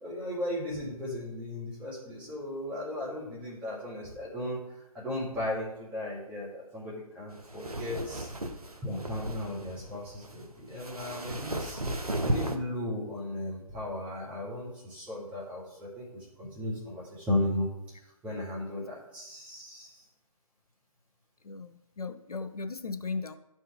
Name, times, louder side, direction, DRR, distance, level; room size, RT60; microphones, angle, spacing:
voice 1, 0.0-8.3 8.8-11.8 12.2-17.7 18.2-20.0, left 1 dB, 5° right, -8 dB, 1.9 m, -36 dB
sound 1, 7.3-12.6, right 1 dB, 80° right, 0.9 m, -35 dB
voice 2, 21.4-23.4, left 4 dB, 85° left, 10 dB, 0.5 m, -37 dB
11.0 x 4.5 x 3.4 m, 0.93 s
figure-of-eight pair, 140°, 19 cm